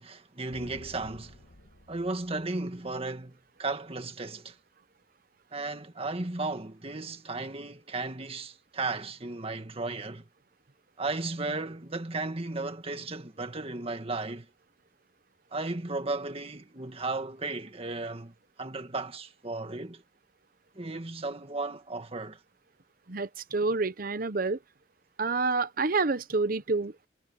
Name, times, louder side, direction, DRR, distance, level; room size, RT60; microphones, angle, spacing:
voice 1, 0.0-1.4 1.9-4.6 5.5-10.3 11.0-14.5 15.5-20.0 20.8-22.4, right 3 dB, 35° right, 1.9 m, -35 dB
sound 1, 0.5-3.2, left 1 dB, 90° left, 1.9 m, -51 dB
voice 2, 23.1-24.6 25.2-27.1, right 3 dB, 55° right, 0.9 m, -28 dB
head